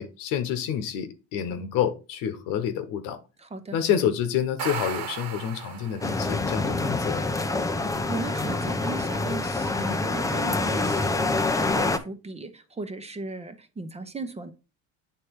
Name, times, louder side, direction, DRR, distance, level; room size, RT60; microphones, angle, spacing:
voice 1, 0.0-3.2 3.7-7.3, left 9 dB, 85° left, 1.1 m, -28 dB
voice 2, 3.4-3.8 8.1-14.5, right 3 dB, 20° right, 0.9 m, -36 dB
sound 1, 4.4-6.4, right 7 dB, 70° right, 1.8 m, -35 dB
sound 2, 6.0-12.0, left 3 dB, 10° left, 0.6 m, -26 dB
8.2 x 3.2 x 4.7 m
cardioid pair, 100°, 32 cm